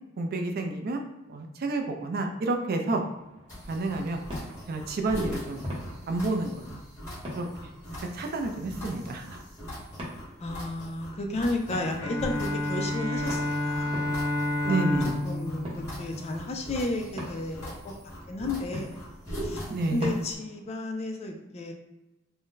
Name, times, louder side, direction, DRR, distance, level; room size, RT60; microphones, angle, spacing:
voice 1, 0.2-1.0 1.3-3.0 3.7-4.2 4.7-5.6 6.1-6.8 7.4-7.5 8.0-9.4 14.6-15.2 19.7-20.1, right 2 dB, 45° right, 4 dB, 0.4 m, -29 dB
sound 1, 3.1-20.7, equal, 25° right, 0.8 m, -44 dB
sound 2, 3.5-20.4, equal, 15° left, 1.4 m, -41 dB
voice 2, 10.4-13.9 14.7-15.0 15.2-17.9 18.3-18.9 19.4-19.6 19.9-21.7, left 2 dB, 30° left, 3 dB, 0.3 m, -33 dB
Bowed string instrument, 12.0-16.9, left 1 dB, 80° left, 0.7 m, -30 dB
2.5 x 2.1 x 3.7 m, 1.0 s
head